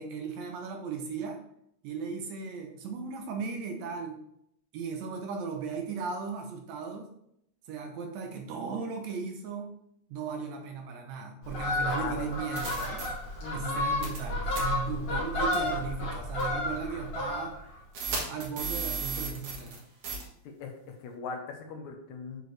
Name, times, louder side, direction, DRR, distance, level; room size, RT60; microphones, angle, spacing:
voice 1, 0.0-1.4 1.8-4.2 4.7-7.1 7.7-9.7 10.1-13.1 13.5-17.6 18.3-19.8, right 5 dB, 70° right, 3 dB, 1.9 m, -36 dB
Fowl, 11.4-17.8 18.1-18.4, left 1 dB, 55° left, 2.6 m, -32 dB
voice 2, 11.7-12.3 13.4-13.9 15.1-15.3 20.4-22.4, left 5 dB, 75° left, 4 dB, 2.2 m, -40 dB
sound 1, 11.9-12.0 12.6-13.1 14.0-14.2 14.5-14.6 15.5-15.7 16.4-16.5 17.9-19.8 20.0-20.2, right 5 dB, 55° right, 2.3 m, -34 dB
7.9 x 4.6 x 3.3 m, 0.75 s
omnidirectional pair, 3.5 m